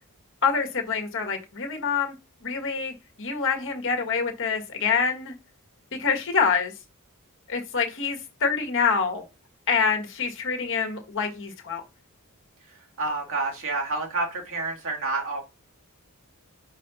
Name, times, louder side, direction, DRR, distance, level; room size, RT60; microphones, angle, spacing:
voice 1, 0.4-2.1 2.4-5.3 6.0-6.7 7.5-9.2 9.7-11.8, left 5 dB, 60° left, 1.6 m, -26 dB
voice 2, 13.0-15.4, right 3 dB, 60° right, 2.1 m, -28 dB
4.9 x 4.3 x 5.5 m
head